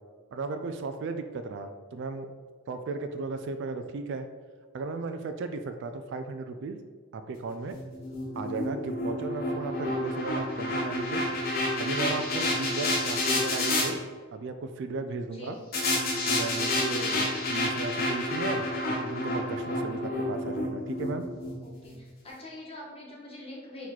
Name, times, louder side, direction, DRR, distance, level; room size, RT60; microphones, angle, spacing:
voice 1, 0.3-2.3 2.7-4.3 4.7-6.8 7.1-7.8 8.3-11.2 11.8-14.0 14.3-15.6 16.2-18.7 19.0-21.3, right 3 dB, 55° right, 8 dB, 0.3 m, -35 dB
sound 1, 7.7-13.9 15.7-22.0, left 2 dB, 45° left, 0.8 m, -29 dB
voice 2, 21.6-23.9, left 2 dB, 25° left, -4 dB, 1.0 m, -45 dB
4.5 x 3.0 x 4.0 m, 1.5 s
head